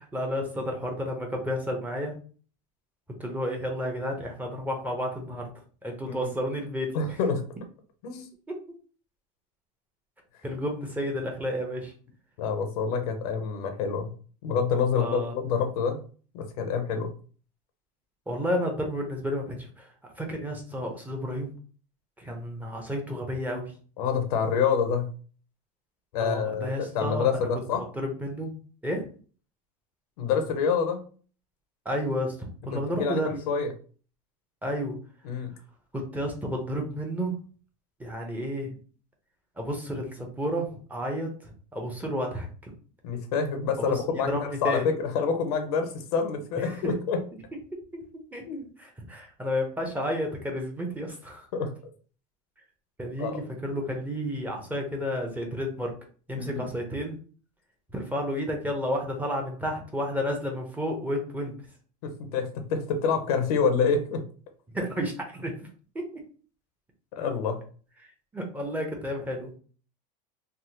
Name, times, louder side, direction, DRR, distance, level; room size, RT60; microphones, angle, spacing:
voice 1, 0.1-2.1 3.2-5.5 5.8-7.2 8.5-8.6 10.4-11.9 14.9-15.3 18.3-21.5 22.2-23.7 26.2-28.5 28.8-29.0 31.8-33.3 34.6-35.0 35.9-37.4 38.0-38.8 39.6-42.7 43.8-44.9 46.6-46.9 47.5-47.6 47.9-48.0 48.3-48.4 48.8-51.5 53.0-56.0 56.3-57.2 57.9-61.6 64.7-65.5 66.1-66.2 68.3-69.5, equal, 10° right, 1 dB, 0.7 m, -31 dB
voice 2, 6.9-7.4 8.0-8.3 12.4-14.1 14.4-16.0 16.3-17.1 24.0-25.1 26.1-27.8 30.2-31.0 32.7-33.7 35.2-35.5 43.0-47.2 48.5-48.7 51.5-51.7 53.2-53.4 56.3-56.6 62.0-64.2 67.2-67.6, left 6 dB, 85° left, 6 dB, 0.7 m, -27 dB
3.4 x 2.0 x 2.8 m, 0.41 s
supercardioid pair, 125°, 19 cm